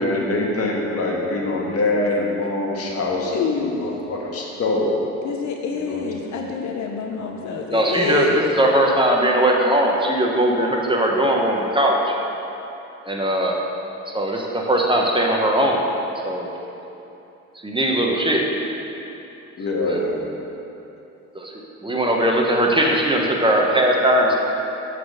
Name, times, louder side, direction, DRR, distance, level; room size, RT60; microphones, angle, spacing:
voice 1, 0.0-4.9 5.7-6.4 6.9-7.6 19.6-20.2, left 2 dB, 50° left, -2 dB, 1.5 m, -25 dB
voice 2, 3.3-3.9 5.2-8.4, left 5 dB, 65° left, 2 dB, 0.7 m, -27 dB
voice 3, 7.7-12.0 13.0-13.6 14.1-15.8 16.2-16.5 17.6-18.4 19.8-20.0 21.3-21.5 21.8-24.3, right 1 dB, 15° right, -1 dB, 1.0 m, -19 dB
8.3 x 4.2 x 6.5 m, 2.9 s
cardioid pair, 90°, 30 cm